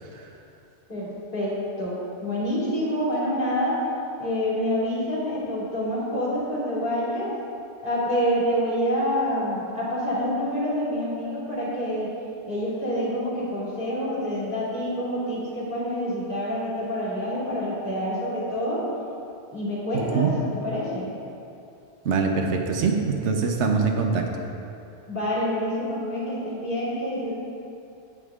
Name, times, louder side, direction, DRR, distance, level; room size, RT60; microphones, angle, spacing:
voice 1, 0.9-3.8 4.2-7.3 7.8-12.1 12.5-18.8 19.5-20.3 20.5-21.1 25.1-27.3, equal, 45° left, -7 dB, 2.6 m, -27 dB
voice 2, 19.9-20.3 22.0-24.3, right 5 dB, 75° right, 3 dB, 1.2 m, -24 dB
10.0 x 8.4 x 3.6 m, 2.6 s
omnidirectional pair, 1.2 m